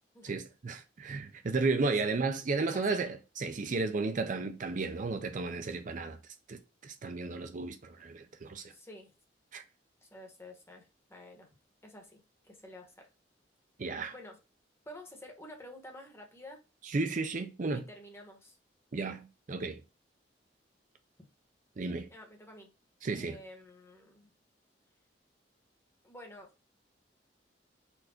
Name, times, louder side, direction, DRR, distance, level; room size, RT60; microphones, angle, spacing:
voice 1, 0.2-6.2 6.5-8.7 9.5-9.6 13.8-14.1 16.8-17.8 18.9-19.8 21.8-22.1 23.0-23.4, right 3 dB, 45° right, 0.5 m, -33 dB
voice 2, 2.6-3.0 8.7-9.1 10.0-11.5 11.8-13.0 14.1-14.4 14.8-16.6 17.7-18.6 22.1-22.7 23.1-24.3 26.0-26.5, left 1 dB, 15° left, 1.3 m, -50 dB
4.4 x 2.6 x 4.3 m
head